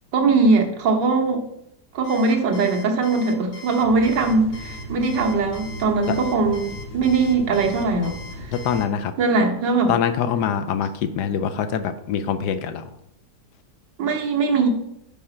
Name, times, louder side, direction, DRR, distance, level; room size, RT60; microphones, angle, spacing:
voice 1, 0.1-1.4 1.9-8.5 9.2-9.9 14.0-14.7, right 4 dB, 90° right, 2 dB, 1.8 m, -21 dB
Alarm, 2.0-8.9, left 3 dB, 60° left, 1.7 m, -41 dB
sound 1, 3.8-8.8, equal, 40° left, 2.1 m, -37 dB
voice 2, 8.5-9.1 9.9-12.9, left 8 dB, 75° left, 9 dB, 1.1 m, -24 dB
5.4 x 4.9 x 5.7 m, 0.79 s
omnidirectional pair, 1.9 m